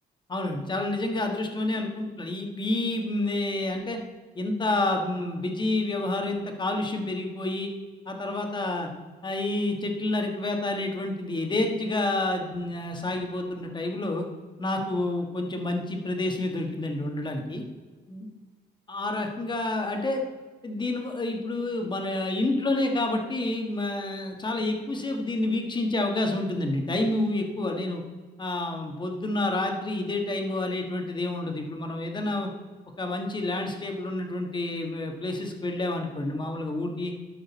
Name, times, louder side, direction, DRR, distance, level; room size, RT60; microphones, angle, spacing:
voice 1, 0.3-4.0 4.3-7.7 8.1-8.9 9.2-14.3 14.6-17.6 18.1-18.3 18.9-20.2 20.6-28.0 28.4-32.5 33.0-37.1, left 2 dB, 25° left, 3 dB, 1.4 m, -29 dB
12.5 x 6.3 x 4.1 m, 1.4 s
cardioid pair, 145°, 18 cm